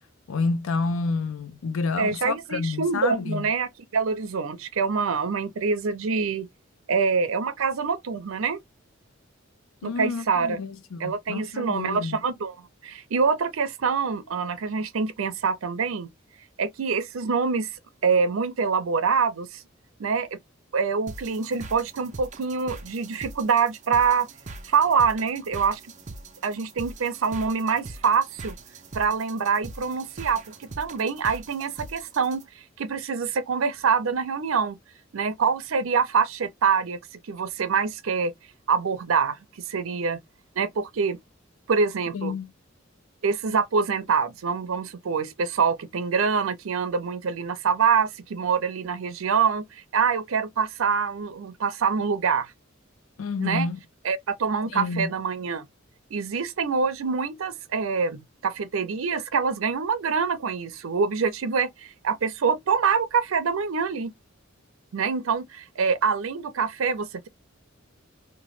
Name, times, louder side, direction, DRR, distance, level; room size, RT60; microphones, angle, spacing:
voice 1, 0.3-3.4 9.8-12.2 42.1-42.5 53.2-53.8 54.7-55.1, left 4 dB, 80° left, 0.5 m, -29 dB
voice 2, 2.0-6.5 6.9-8.6 9.8-10.6 11.0-12.6 12.8-16.1 16.6-17.7 18.0-19.6 20.0-20.4 20.7-24.3 24.6-25.8 26.4-28.5 28.9-32.4 32.8-34.8 35.1-37.0 37.3-38.3 38.7-39.4 39.7-40.2 40.6-41.2 41.7-42.3 43.2-52.5 53.4-53.7 54.0-55.7 56.1-64.1 64.9-67.3, right 5 dB, 85° right, 0.5 m, -25 dB
sound 1, 21.1-32.4, right 3 dB, 35° right, 0.5 m, -42 dB
2.9 x 2.2 x 3.1 m
head